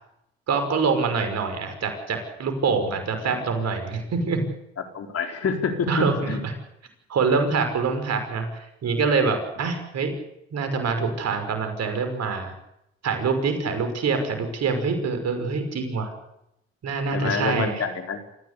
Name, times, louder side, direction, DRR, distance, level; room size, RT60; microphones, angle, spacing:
voice 1, 0.5-4.5 5.9-6.5 7.1-10.1 10.5-12.5 13.0-16.1 16.8-17.8, right 4 dB, 60° right, 7 dB, 5.9 m, -25 dB
voice 2, 4.9-6.4 13.7-13.8 17.1-18.2, left 5 dB, 55° left, 5 dB, 4.4 m, -27 dB
26.5 x 15.5 x 8.4 m, 0.82 s
hypercardioid pair, 50°, 29 cm